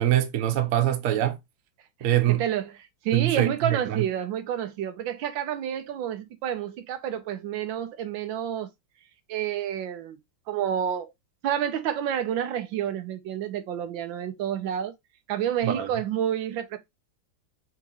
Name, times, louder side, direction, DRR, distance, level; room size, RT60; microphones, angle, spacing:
voice 1, 0.0-1.4 2.0-2.4 3.1-4.0 15.6-15.9, right 13 dB, 55° right, 0.9 m, -24 dB
voice 2, 2.0-2.7 3.0-8.7 9.3-10.2 10.5-11.1 11.4-14.9 15.3-16.8, right 9 dB, 80° right, 1.4 m, -29 dB
5.9 x 2.9 x 2.9 m
omnidirectional pair, 2.1 m